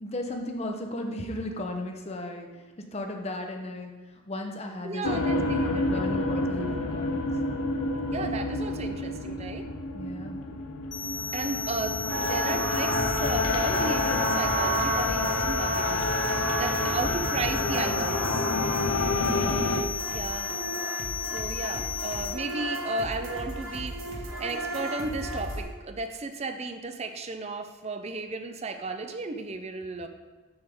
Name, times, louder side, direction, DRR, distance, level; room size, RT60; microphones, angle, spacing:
voice 1, 0.0-3.9 4.3-7.3 9.9-10.5, left 1 dB, 30° left, 3 dB, 0.7 m, -35 dB
voice 2, 4.8-6.4 8.1-9.7 11.3-18.4 19.3-19.7 20.1-20.6 21.2-23.9 24.4-30.1, right 3 dB, 30° right, 7 dB, 0.4 m, -34 dB
Abadoned Nuclear Factory, 5.0-19.8, left 3 dB, 85° left, 0.6 m, -29 dB
sound 1, 10.9-22.3, left 6 dB, 55° left, 0.9 m, -35 dB
sound 2, 12.1-25.6, right 2 dB, 70° right, 1.4 m, -33 dB
7.9 x 3.5 x 5.2 m, 1.3 s
head